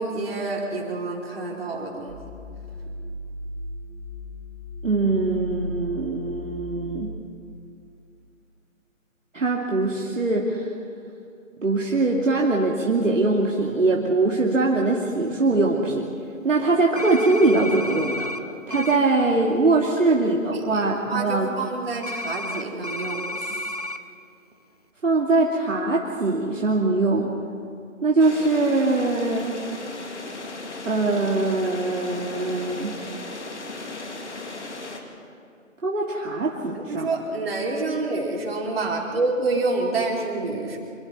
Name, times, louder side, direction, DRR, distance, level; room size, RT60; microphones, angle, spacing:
voice 1, 0.0-2.2 20.0-20.2 20.5-20.8 21.1-23.7 36.7-40.8, right 3 dB, 45° right, -1 dB, 4.5 m, -28 dB
sound 1, 2.1-7.1, equal, 20° right, 2.7 m, -36 dB
voice 2, 4.8-7.1 9.3-10.7 11.6-16.1 16.4-18.3 18.7-21.5 25.0-27.3 28.0-29.6 30.8-33.0 35.8-37.1, right 3 dB, 65° right, -2 dB, 2.8 m, -22 dB
sound 2, 17.0-18.4 18.7-19.0 22.0-24.0, left 1 dB, 30° left, 0.6 m, -32 dB
sound 3, 28.2-35.0, left 2 dB, 55° left, 3.0 m, -36 dB
27.0 x 23.5 x 4.5 m, 2.5 s
figure-of-eight pair, 165°, 40 cm